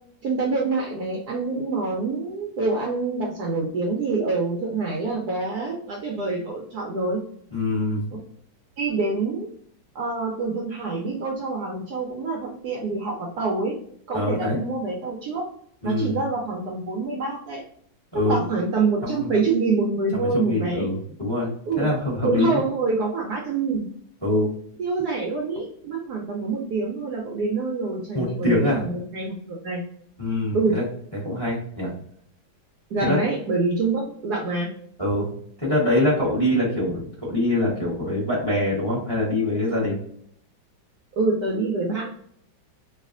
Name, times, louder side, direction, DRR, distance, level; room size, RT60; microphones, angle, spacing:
voice 1, 0.2-7.2 8.1-8.2 8.8-9.5 9.9-13.8 14.1-15.5 15.8-17.6 18.1-20.9 21.7-21.9 22.2-23.8 24.8-29.8 30.5-30.8 32.9-34.7 41.1-42.1, right 3 dB, 65° right, -1 dB, 1.0 m, -26 dB
voice 2, 7.5-8.1 14.1-14.6 15.8-16.2 18.1-18.4 19.0-19.3 20.1-21.5 21.8-22.6 24.2-24.5 28.1-28.8 30.2-30.8 31.2-31.9 33.1-33.2 35.0-35.3 35.6-40.0, left 1 dB, 15° left, -5 dB, 0.9 m, -24 dB
3.2 x 2.4 x 2.4 m, 0.64 s
omnidirectional pair, 2.1 m